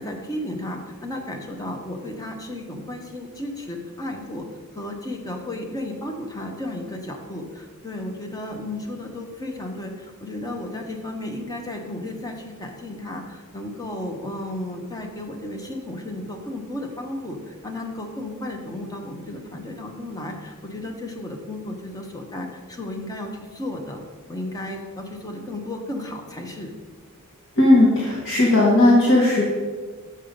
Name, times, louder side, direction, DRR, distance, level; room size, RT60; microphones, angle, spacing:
voice 1, 0.0-4.4 4.7-24.0 24.3-26.7, left 1 dB, 15° left, 2 dB, 0.9 m, -33 dB
voice 2, 27.6-29.4, left 1 dB, 60° left, -4 dB, 1.2 m, -16 dB
6.7 x 5.6 x 5.2 m, 1.5 s
head